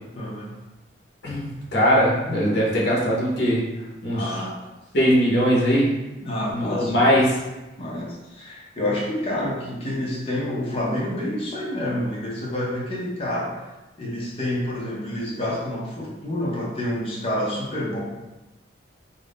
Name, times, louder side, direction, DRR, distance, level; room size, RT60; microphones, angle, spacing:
voice 1, 0.2-0.5 4.1-4.5 6.2-7.1 7.8-13.5 14.0-18.0, left 1 dB, 30° left, -4 dB, 0.6 m, -28 dB
voice 2, 1.2-3.7 4.0-4.3 4.9-5.9 6.5-7.4, equal, 60° left, -5 dB, 0.8 m, -20 dB
2.5 x 2.0 x 3.4 m, 1.0 s
head